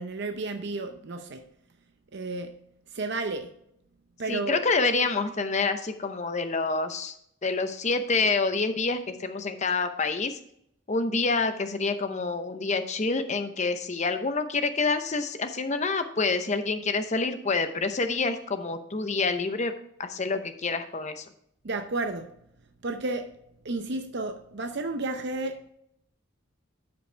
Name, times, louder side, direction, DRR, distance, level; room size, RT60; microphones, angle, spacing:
voice 1, 0.0-1.4 2.1-2.6 2.9-3.5 4.2-4.6 21.6-22.3 22.8-23.3 23.6-25.7, right 2 dB, 55° right, 6 dB, 0.6 m, -32 dB
voice 2, 4.3-7.1 7.4-10.4 10.9-19.7 20.0-21.2, left 3 dB, 35° left, 9 dB, 0.7 m, -27 dB
12.5 x 5.3 x 3.3 m, 0.72 s
head